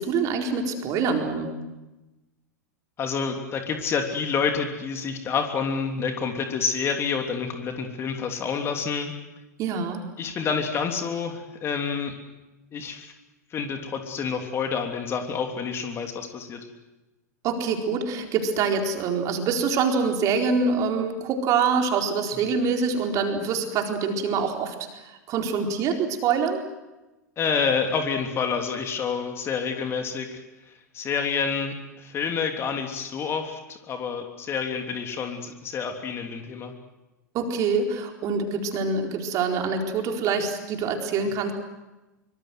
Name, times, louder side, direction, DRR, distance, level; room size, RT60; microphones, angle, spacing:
voice 1, 0.0-1.5 9.6-10.0 17.4-24.7 25.3-26.6 37.3-41.5, right 5 dB, 35° right, 3 dB, 4.3 m, -25 dB
voice 2, 3.0-9.1 10.2-12.1 12.7-13.1 13.5-16.7 22.3-22.4 27.4-36.7, left 6 dB, 25° left, 5 dB, 3.2 m, -28 dB
25.0 x 24.5 x 7.9 m, 1.0 s
figure-of-eight pair, 95°, 9 cm